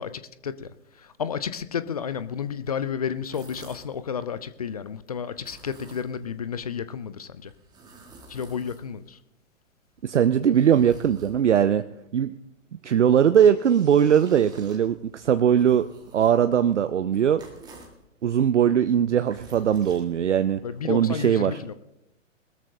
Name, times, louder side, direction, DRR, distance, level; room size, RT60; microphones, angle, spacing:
voice 1, 0.0-7.5 8.3-9.2 20.6-21.7, left 7 dB, 30° left, 0.4 m, -32 dB
sound 1, 3.1-4.0 5.3-6.4 7.4-9.2 9.9-11.7 13.1-18.0 19.0-20.6, right 2 dB, 10° right, 1.7 m, -51 dB
voice 2, 10.0-11.8 12.1-12.3 12.8-15.9 16.1-17.4 18.2-21.6, right 8 dB, 60° right, 0.6 m, -20 dB
20.5 x 13.5 x 2.7 m
figure-of-eight pair, 120°, 39 cm